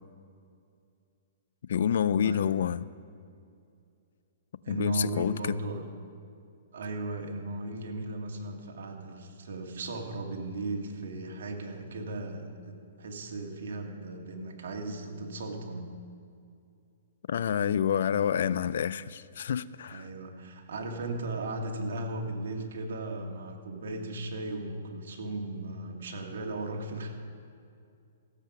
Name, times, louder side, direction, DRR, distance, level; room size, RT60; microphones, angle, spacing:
voice 1, 1.7-2.9 4.7-5.6 17.3-20.1, left 8 dB, 70° left, 18 dB, 0.4 m, -28 dB
voice 2, 4.6-5.8 6.7-15.9 19.9-27.1, right 2 dB, 70° right, 2 dB, 1.9 m, -36 dB
15.5 x 7.7 x 5.9 m, 2.5 s
hypercardioid pair, 145°, 0 cm